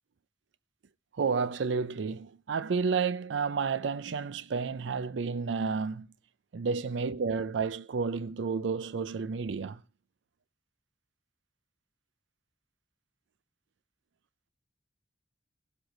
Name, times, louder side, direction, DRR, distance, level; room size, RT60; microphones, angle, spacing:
voice 1, 1.2-6.1 6.5-9.8, right 5 dB, 75° right, 0.4 m, -31 dB
17.0 x 7.9 x 3.9 m
head